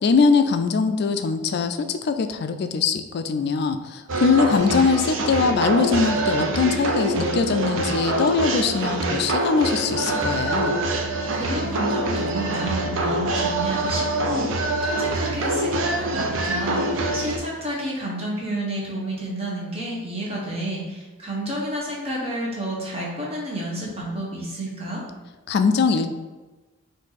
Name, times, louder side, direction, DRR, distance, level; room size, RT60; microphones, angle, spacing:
voice 1, 0.0-10.8 25.5-26.1, left 5 dB, 50° left, 9 dB, 0.3 m, -22 dB
sound 1, 4.1-17.4, right 1 dB, 65° right, 0.5 m, -25 dB
voice 2, 11.3-25.0, right 1 dB, 30° right, -4 dB, 1.0 m, -30 dB
4.3 x 2.6 x 4.0 m, 1.2 s
head